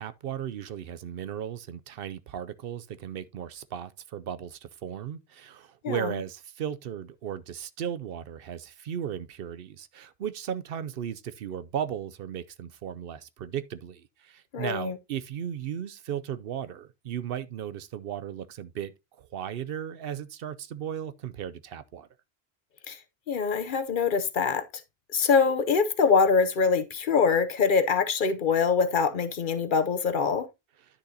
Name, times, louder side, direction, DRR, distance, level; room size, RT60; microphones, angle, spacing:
voice 1, 0.0-18.9 19.2-22.1, right 9 dB, 70° right, 0.8 m, -36 dB
voice 2, 14.5-14.9 22.9-23.0 23.3-24.7 25.1-30.5, left 5 dB, 55° left, 0.9 m, -24 dB
10.0 x 6.5 x 2.7 m
omnidirectional pair, 1.0 m